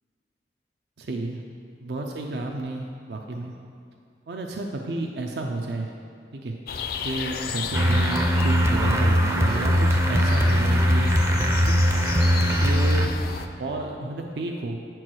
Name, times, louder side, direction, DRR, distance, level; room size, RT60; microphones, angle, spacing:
voice 1, 1.0-1.4 1.8-3.5 4.3-5.9 6.3-6.5 7.0-11.1 11.6-11.8 12.5-14.8, right 2 dB, 70° right, 2 dB, 0.5 m, -31 dB
Birds in a wooden suburban village near Moscow, 6.7-13.5, left 5 dB, 55° left, 0.4 m, -33 dB
sound 1, 7.7-13.1, equal, 15° right, 0.4 m, -20 dB
8.8 x 4.6 x 6.2 m, 2.3 s
head